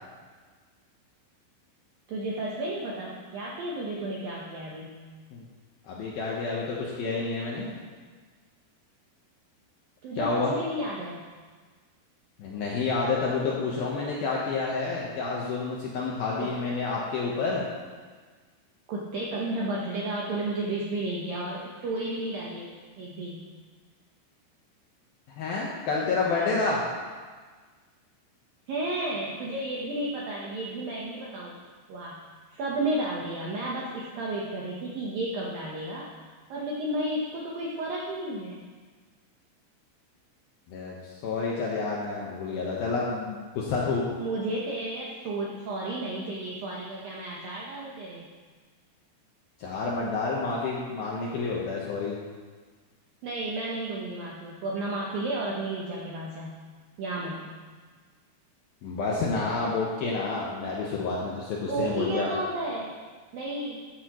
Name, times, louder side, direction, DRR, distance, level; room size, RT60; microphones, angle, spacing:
voice 1, 2.1-5.0 10.0-11.2 16.4-16.5 18.9-22.7 23.0-23.4 28.7-31.6 31.9-32.2 32.5-36.1 36.5-38.6 44.2-48.3 53.2-56.6 57.0-57.5 61.7-62.9 63.3-63.8, right 2 dB, 75° right, -4 dB, 2.1 m, -32 dB
voice 2, 5.8-7.7 10.2-10.5 12.4-17.6 25.4-26.8 40.7-44.0 49.6-52.2 58.8-62.3, left 4 dB, 75° left, -4 dB, 2.3 m, -29 dB
14.0 x 9.7 x 3.0 m, 1.5 s
omnidirectional pair, 5.6 m